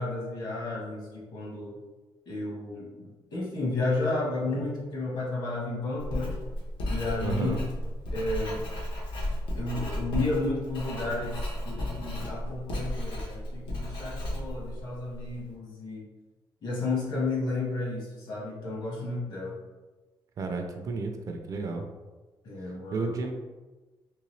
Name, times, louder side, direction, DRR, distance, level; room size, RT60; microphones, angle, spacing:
voice 1, 0.0-1.8 2.3-6.4 6.9-7.6 8.1-8.6 9.5-16.1 16.6-19.6 22.4-23.2, left 2 dB, 55° left, -3 dB, 1.2 m, -32 dB
Writing, 6.0-15.4, left 1 dB, 75° left, 1.0 m, -34 dB
voice 2, 7.2-7.7 20.4-21.9 22.9-23.4, right 3 dB, 40° right, 4 dB, 0.4 m, -32 dB
3.8 x 3.1 x 3.1 m, 1.2 s
cardioid pair, 180°, 9 cm